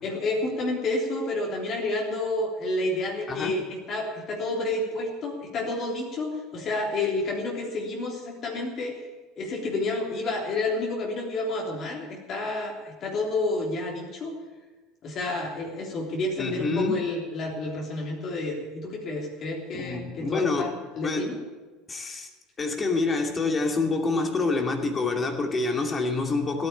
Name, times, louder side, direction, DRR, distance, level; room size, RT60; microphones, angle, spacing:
voice 1, 0.0-9.0 9.4-14.3 15.0-21.4, left 2 dB, 45° left, -1 dB, 3.3 m, -30 dB
voice 2, 3.3-3.6 16.4-17.1 19.7-20.7 21.0-21.2 21.9-22.3 22.6-26.7, left 3 dB, 25° left, 3 dB, 2.6 m, -27 dB
16.5 x 9.4 x 8.6 m, 1.3 s
hypercardioid pair, 70°, 0 cm